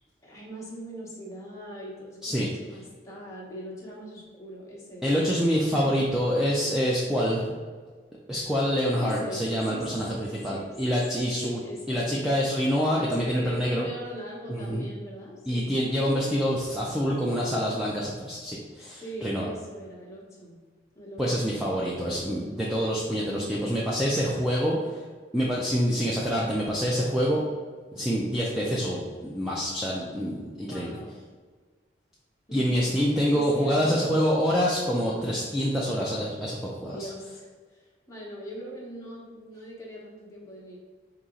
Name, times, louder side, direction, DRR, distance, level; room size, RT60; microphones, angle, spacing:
voice 1, 0.2-5.2 8.8-12.3 13.0-15.8 18.8-20.5 20.9-21.5 22.0-22.6 23.1-23.6 28.6-28.9 30.6-31.2 32.5-32.8 33.3-34.3 34.9-35.3 36.8-40.8, equal, 15° left, -5 dB, 1.0 m, -41 dB
voice 2, 5.0-7.5 8.3-11.6 11.9-13.9 14.5-14.8 15.5-19.5 21.2-25.0 25.3-27.4 27.9-31.0 32.5-37.1, equal, 5° right, -5 dB, 0.4 m, -26 dB
4.1 x 3.0 x 3.7 m, 1.5 s
head